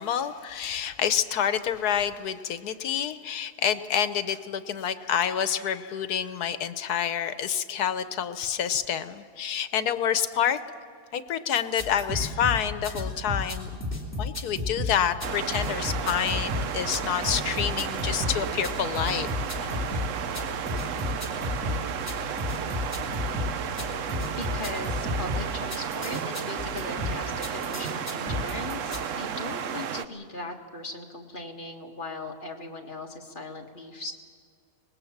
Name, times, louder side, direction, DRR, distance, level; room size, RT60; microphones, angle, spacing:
voice 1, 0.0-10.6 11.1-13.7 14.2-19.3 19.6-19.8, left 9 dB, 85° left, 11 dB, 1.4 m, -28 dB
sound 1, 11.6-29.0, left 2 dB, 10° left, 3.1 m, -33 dB
sound 2, 15.2-30.1, right 8 dB, 60° right, 1.0 m, -33 dB
voice 2, 24.4-34.1, left 2 dB, 35° left, 1 dB, 2.1 m, -38 dB
25.0 x 20.0 x 7.3 m, 2.2 s
omnidirectional pair, 1.6 m